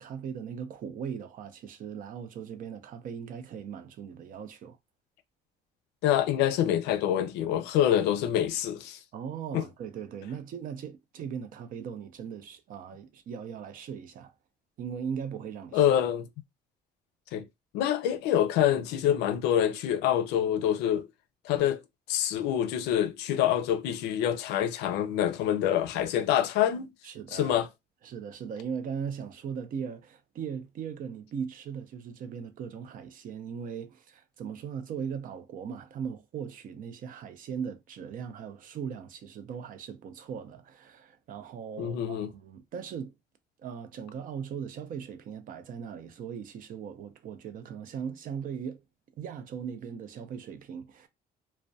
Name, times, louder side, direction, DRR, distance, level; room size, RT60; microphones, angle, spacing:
voice 1, 0.0-4.8 9.1-14.3 14.8-15.9 27.0-27.6 28.0-43.1 43.6-48.8 49.2-51.1, right 7 dB, 55° right, 0.5 m, -39 dB
voice 2, 6.0-9.0 9.5-9.6 15.7-16.3 17.3-17.4 17.7-21.1 21.4-21.8 22.1-26.9 27.3-27.7 41.8-42.3, left 10 dB, 90° left, 0.4 m, -26 dB
2.2 x 2.1 x 2.6 m
cardioid pair, 110°, 17 cm